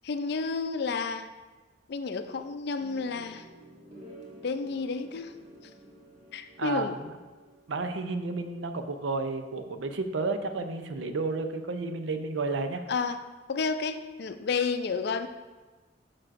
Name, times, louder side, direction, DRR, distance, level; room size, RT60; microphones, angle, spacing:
voice 1, 0.0-1.3 1.9-3.4 4.4-5.3 6.3-7.0 12.9-13.2 13.5-15.3, left 4 dB, 60° left, 9 dB, 0.4 m, -31 dB
sound 1, 2.8-7.9, equal, 40° right, 1.3 m, -51 dB
voice 2, 6.6-7.1 7.7-12.8, right 3 dB, 85° right, 8 dB, 0.6 m, -31 dB
9.1 x 6.0 x 2.5 m, 1.2 s
head